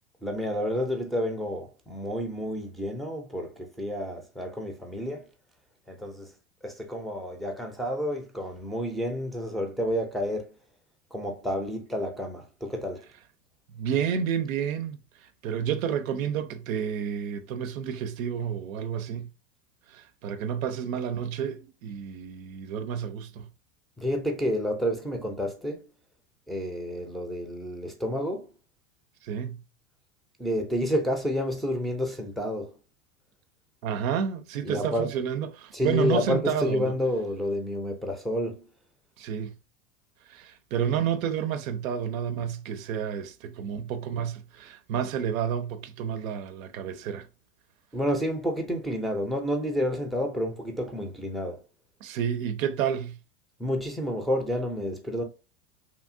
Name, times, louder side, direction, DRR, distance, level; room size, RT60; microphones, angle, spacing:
voice 1, 0.2-5.3 5.9-6.3 6.6-10.5 11.1-13.1 24.0-25.9 26.5-28.5 30.4-32.8 34.6-35.1 35.7-38.7 47.9-51.6 53.6-55.2, equal, ahead, 0.4 m, -30 dB
voice 2, 13.7-19.3 19.9-23.5 29.2-29.6 33.8-36.9 39.2-39.5 40.3-47.3 52.0-53.2, right 8 dB, 80° right, 0.5 m, -30 dB
2.9 x 2.6 x 2.5 m
hypercardioid pair, 105°, 40 cm